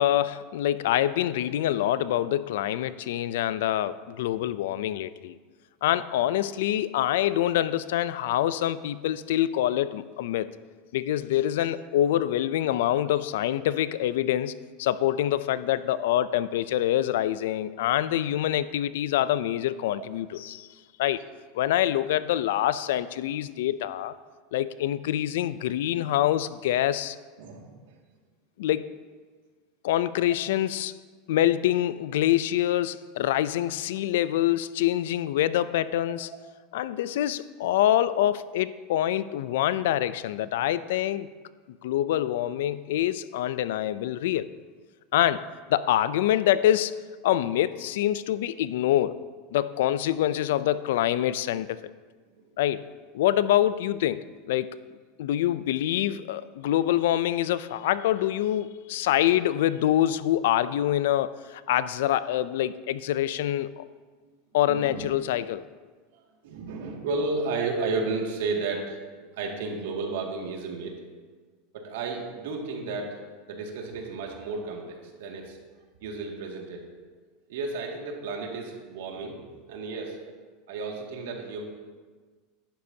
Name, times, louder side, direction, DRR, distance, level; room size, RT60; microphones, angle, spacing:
voice 1, 0.0-5.4 5.8-10.5 10.9-20.7 21.0-21.2 21.5-24.1 24.5-27.2 28.6-28.9 29.8-30.9 31.3-36.3 36.7-41.3 41.8-44.5 45.1-47.0 47.2-49.2 49.5-51.9 52.6-52.9 53.1-54.8 55.2-63.8 64.5-65.6, left 12 dB, 80° left, 15 dB, 0.4 m, -25 dB
voice 2, 27.4-28.0 52.3-52.4 64.6-65.1 66.1-69.0 69.3-71.0 71.7-73.2 73.5-75.6 76.0-76.8 77.5-80.2 80.7-81.6, right 3 dB, 80° right, 0 dB, 2.1 m, -33 dB
13.0 x 11.5 x 2.8 m, 1.4 s
supercardioid pair, 150°, 0 cm